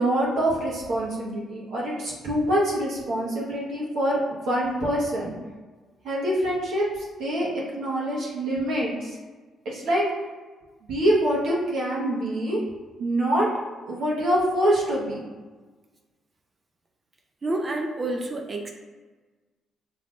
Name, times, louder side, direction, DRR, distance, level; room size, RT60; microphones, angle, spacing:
voice 1, 0.0-5.3 6.0-9.2 9.6-10.1 10.9-12.6 13.0-13.5 13.9-15.2, right 1 dB, 80° right, -5 dB, 1.3 m, -25 dB
voice 2, 17.4-18.7, right 2 dB, 30° right, 2 dB, 0.5 m, -28 dB
5.4 x 3.3 x 2.5 m, 1.3 s
cardioid pair, 90°, 0 cm